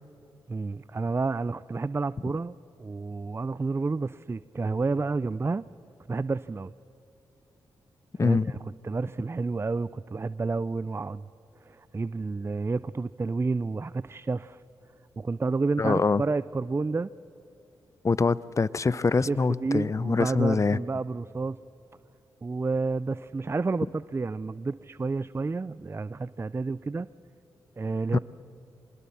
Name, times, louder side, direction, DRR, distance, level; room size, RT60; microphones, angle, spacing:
voice 1, 0.5-5.7 6.1-6.7 8.2-8.6 8.8-11.3 11.6-14.6 15.2-17.1 19.3-21.6 22.4-27.1 27.8-28.2, right 3 dB, 25° right, 17 dB, 0.4 m, -30 dB
voice 2, 8.2-8.5 15.8-16.2 18.0-20.8 28.1-28.2, left 4 dB, 35° left, 20 dB, 0.6 m, -24 dB
25.0 x 20.5 x 7.1 m, 2.9 s
supercardioid pair, 45°, 9 cm